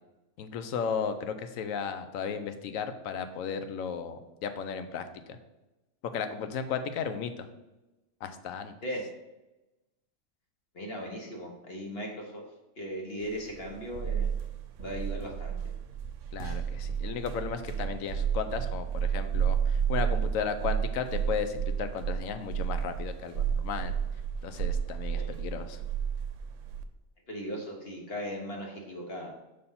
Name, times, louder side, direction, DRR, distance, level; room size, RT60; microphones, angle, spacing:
voice 1, 0.4-5.4 6.1-7.5 8.2-8.7 16.3-23.9 24.4-25.8, left 6 dB, 80° left, 9 dB, 1.0 m, -35 dB
voice 2, 10.7-12.4 12.8-14.3 14.8-15.5 25.1-25.3 27.3-29.3, equal, 50° left, 0 dB, 1.2 m, -38 dB
sound 1, 13.4-26.8, right 8 dB, 70° right, 0.9 m, -31 dB
5.4 x 4.2 x 5.6 m, 1.0 s
omnidirectional pair, 1.4 m